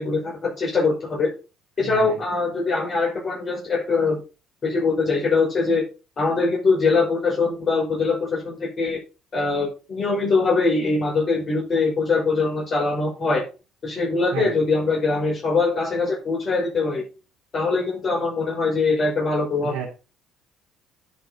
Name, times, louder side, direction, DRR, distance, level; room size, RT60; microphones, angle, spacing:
voice 1, 0.0-1.3 1.8-4.2 4.6-5.8 6.2-9.0 9.3-13.5 13.8-17.0 17.5-19.9, left 3 dB, 40° left, -3 dB, 5.5 m, -22 dB
voice 2, 1.8-2.1 14.3-14.6 19.6-19.9, right 7 dB, 65° right, -3 dB, 2.7 m, -31 dB
10.0 x 5.3 x 5.5 m, 0.31 s
figure-of-eight pair, 50°, 0 cm